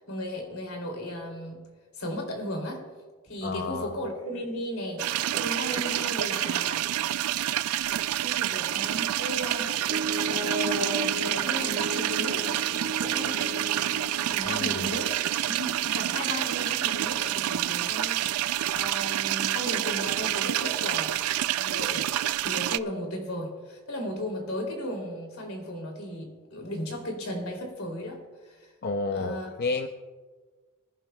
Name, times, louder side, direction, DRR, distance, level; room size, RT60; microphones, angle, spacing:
voice 1, 0.1-1.6 1.9-2.9 3.2-5.0 5.3-6.9 8.2-9.8 10.3-12.5 13.0-13.6 14.3-15.1 15.5-21.2 21.6-22.0 22.4-28.7 29.1-29.5, equal, 75° left, 1 dB, 2.9 m, -35 dB
voice 2, 3.4-4.0 14.4-14.9 28.8-29.9, left 3 dB, 45° left, 6 dB, 0.5 m, -31 dB
sound 1, 5.0-22.8, right 12 dB, 85° right, 0.3 m, -28 dB
Piano, 9.9-14.9, right 1 dB, 55° right, 1.3 m, -35 dB
24.5 x 11.0 x 2.2 m, 1.4 s
head